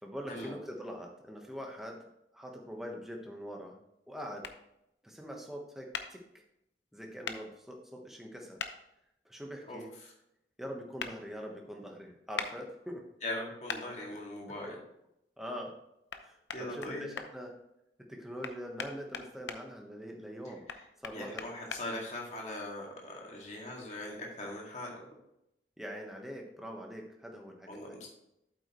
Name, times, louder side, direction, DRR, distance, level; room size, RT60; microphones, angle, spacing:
voice 1, 0.0-2.1 2.3-3.8 4.1-4.5 5.0-6.4 6.9-8.6 9.2-9.9 10.6-13.0 14.1-14.2 15.4-15.7 16.2-17.5 18.1-20.7 21.0-21.4 25.8-28.0, equal, ahead, 1 dB, 1.2 m, -43 dB
sound 1, 4.4-4.6 5.9-6.1 7.2-7.4 8.6-8.7 11.0-11.1 12.4-12.5 13.7-13.8 16.1-16.2 16.5-17.3 18.4-19.6 20.7-21.8, left 6 dB, 85° left, 0.7 m, -38 dB
voice 2, 9.7-10.1 13.2-14.7 16.5-17.1 20.5-20.6 21.1-25.0 27.7-28.1, left 1 dB, 40° left, -2 dB, 2.2 m, -40 dB
8.3 x 8.2 x 3.1 m, 0.82 s
head